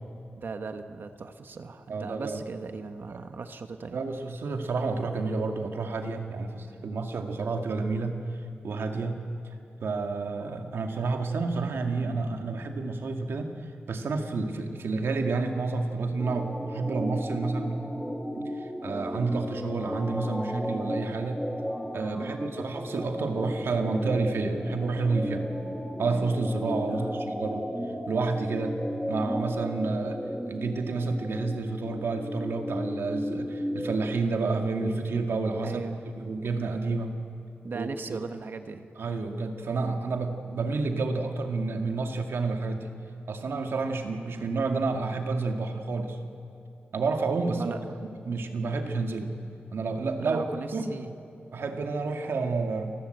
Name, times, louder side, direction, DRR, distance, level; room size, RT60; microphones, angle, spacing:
voice 1, 0.3-4.0 8.9-9.3 22.1-22.4 26.9-27.2 35.6-36.1 37.6-38.9 47.5-48.0 50.2-51.1, right 4 dB, 60° right, 8 dB, 1.2 m, -38 dB
voice 2, 1.9-2.4 3.9-8.2 8.6-9.2 9.8-13.5 13.9-17.8 18.4-21.4 21.9-25.5 26.0-27.7 28.1-28.8 29.1-35.8 36.2-37.1 37.7-38.2 39.0-42.9 43.3-46.2 46.9-47.8 48.3-49.3 49.7-50.4 50.7-50.9 51.5-52.9, right 3 dB, 80° right, 4 dB, 2.2 m, -30 dB
sound 1, 16.2-35.2, equal, ahead, 1.8 m, -34 dB
29.0 x 20.0 x 7.9 m, 2.6 s
wide cardioid pair, 150°, 4 cm